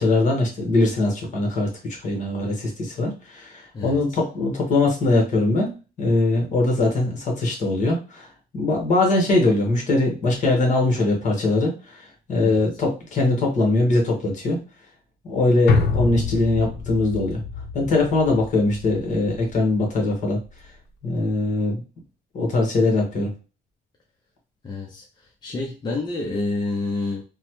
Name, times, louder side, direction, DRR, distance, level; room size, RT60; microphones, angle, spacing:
voice 1, 0.0-1.7 2.0-5.7 6.0-8.3 8.5-14.6 15.3-17.4 17.7-20.4 21.0-21.8 22.3-23.3, left 2 dB, 45° left, 1 dB, 1.3 m, -21 dB
voice 2, 3.7-4.2 12.4-12.6 24.6-27.2, left 2 dB, 25° left, 0 dB, 0.6 m, -29 dB
sound 1, 15.7-20.1 20.5-20.6, left 4 dB, 75° left, 0.6 m, -27 dB
3.1 x 2.1 x 2.9 m, 0.32 s
cardioid pair, 110°, 17 cm